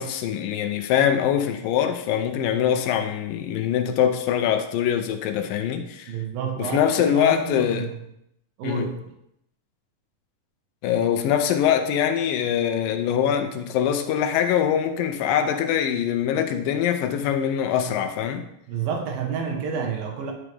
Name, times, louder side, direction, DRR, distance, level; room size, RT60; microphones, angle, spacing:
voice 1, 0.0-6.2 6.6-7.9 8.6-8.9 10.8-18.5, left 9 dB, 85° left, 7 dB, 2.5 m, -23 dB
voice 2, 6.1-7.9 8.6-8.9 18.7-20.3, right 6 dB, 85° right, 2 dB, 3.1 m, -29 dB
11.0 x 6.2 x 3.4 m, 0.78 s
omnidirectional pair, 4.1 m